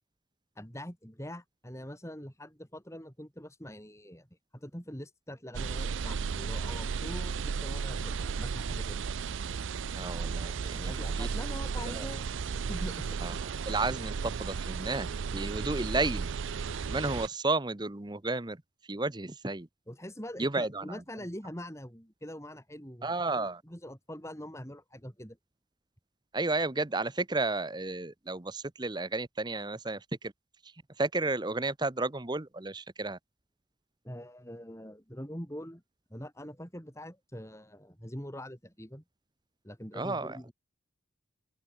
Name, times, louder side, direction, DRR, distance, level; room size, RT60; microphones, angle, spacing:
voice 1, 0.6-4.3 4.5-9.0 10.8-12.3 12.7-13.2 14.6-14.7 19.9-25.4 34.0-35.8 36.1-39.0 39.6-40.5, equal, 15° left, 7.0 m, -43 dB
sound 1, 5.5-17.3, right 5 dB, 70° right, 0.5 m, -34 dB
voice 2, 9.9-10.9 11.2-11.3 11.9-12.1 13.2-13.4 13.7-16.3 16.9-18.6 18.9-19.7 20.4-21.0 23.0-23.6 26.3-30.0 31.0-33.2 40.0-40.4, right 3 dB, 20° right, 0.8 m, -32 dB
open air
head